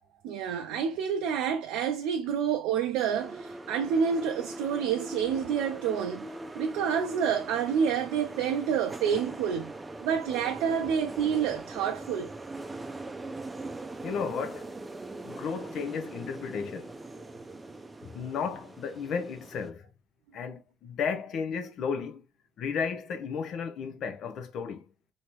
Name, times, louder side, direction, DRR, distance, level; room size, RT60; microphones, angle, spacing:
voice 1, 0.2-6.3 6.5-9.7 10.0-12.3, right 7 dB, 80° right, 0.4 m, -28 dB
sound 1, 3.1-19.7, right 2 dB, 20° right, 0.5 m, -41 dB
voice 2, 14.0-14.7 15.2-16.9 18.0-19.9 20.3-22.2 22.6-24.9, left 6 dB, 65° left, 0.7 m, -34 dB
3.0 x 2.8 x 3.0 m
supercardioid pair, 70°, 0 cm